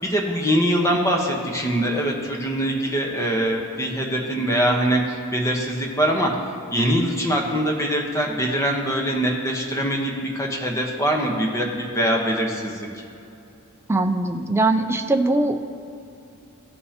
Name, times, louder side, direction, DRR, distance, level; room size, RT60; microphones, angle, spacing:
voice 1, 0.0-6.3 6.7-12.9, equal, 15° left, 0 dB, 1.0 m, -23 dB
voice 2, 13.9-15.6, right 2 dB, 10° right, 6 dB, 0.4 m, -21 dB
15.5 x 5.5 x 2.9 m, 2.6 s
head